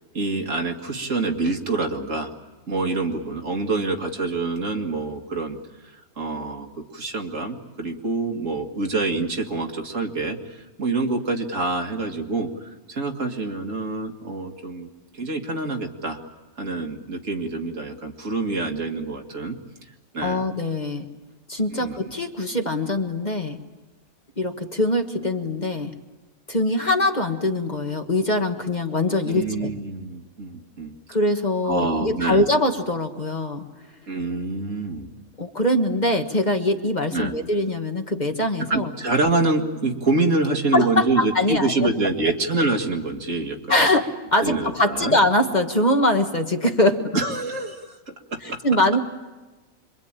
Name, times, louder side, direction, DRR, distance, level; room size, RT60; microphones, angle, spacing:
voice 1, 0.1-2.3 2.7-5.6 5.8-16.2 16.6-19.6 20.1-20.5 21.7-22.0 29.3-30.9 31.6-32.5 34.1-35.1 37.1-37.3 38.7-43.8 44.4-45.2 47.1-48.6, right 3 dB, 65° right, 3 dB, 2.3 m, -26 dB
voice 2, 20.2-21.1 21.5-23.6 24.4-25.9 26.5-29.7 31.1-33.7 35.4-38.9 40.7-41.9 43.7-47.2 48.4-49.0, left 1 dB, 35° left, 4 dB, 1.4 m, -22 dB
26.5 x 23.0 x 8.9 m, 1.2 s
omnidirectional pair, 1.5 m